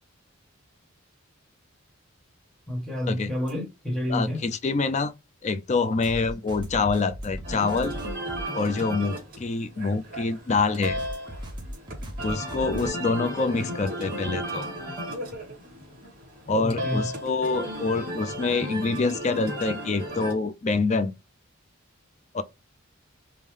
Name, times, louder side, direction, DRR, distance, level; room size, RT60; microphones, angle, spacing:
voice 1, 2.7-4.4 16.5-17.1, left 1 dB, 5° left, 1.3 m, -29 dB
sound 1, 3.5-3.6 6.0-8.4 10.8-12.9, equal, 20° right, 0.9 m, -37 dB
voice 2, 4.1-5.1 5.4-7.9 8.5-11.0 12.2-14.7 16.5-21.1 22.3-22.4, left 4 dB, 35° left, 0.4 m, -26 dB
sound 2, 7.4-20.3, equal, 45° right, 2.3 m, -35 dB
5.3 x 2.1 x 3.2 m
head